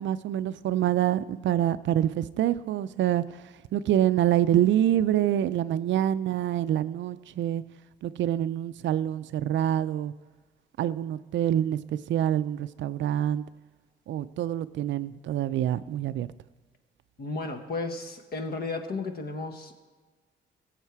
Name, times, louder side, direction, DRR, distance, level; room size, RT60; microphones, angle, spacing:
voice 1, 0.0-3.2 3.7-7.6 8.0-10.1 10.8-11.8 12.1-13.4 14.1-16.3, right 11 dB, 70° right, 15 dB, 0.5 m, -26 dB
voice 2, 17.2-19.7, left 3 dB, 50° left, 6 dB, 1.4 m, -33 dB
16.0 x 7.3 x 4.7 m, 1.3 s
cardioid pair, 90°, 20 cm